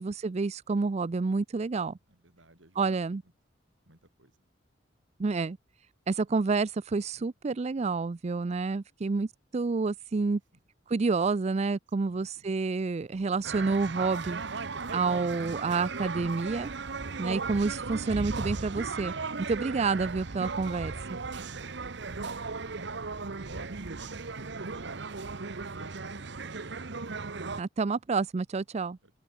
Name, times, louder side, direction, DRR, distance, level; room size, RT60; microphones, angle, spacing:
voice 1, 0.0-2.0 2.8-3.2 5.2-5.6 6.1-9.3 9.5-10.4 10.9-14.4 14.9-16.7 17.2-19.1 19.5-20.9 27.6-29.0, right 4 dB, 35° right, 0.4 m, -29 dB
voice 2, 2.1-3.0 3.9-4.4 12.1-12.5 21.2-25.1 25.6-26.8 29.0-29.1, right 2 dB, 90° right, 6.4 m, -52 dB
sound 1, 13.4-27.6, right 4 dB, 65° right, 1.1 m, -36 dB
open air
head